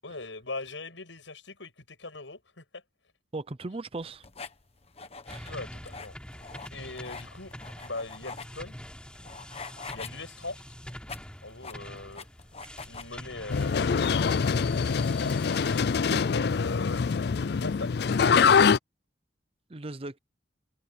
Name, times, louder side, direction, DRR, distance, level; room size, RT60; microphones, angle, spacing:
voice 1, 0.0-2.8 5.4-6.2 6.7-7.5 7.8-8.8 9.9-10.6 11.4-12.3 12.8-13.9 16.0-17.0 17.4-18.1, left 2 dB, 85° left, 6.7 m, -40 dB
voice 2, 3.3-4.2 5.3-5.6 12.6-12.7 16.1-16.2 19.7-20.2, right 2 dB, 30° right, 0.6 m, -38 dB
sound 1, 4.0-17.8, left 4 dB, 35° left, 1.2 m, -46 dB
sound 2, 5.3-15.8, equal, 5° left, 3.3 m, -45 dB
sound 3, 13.5-18.8, left 6 dB, 60° left, 0.4 m, -24 dB
head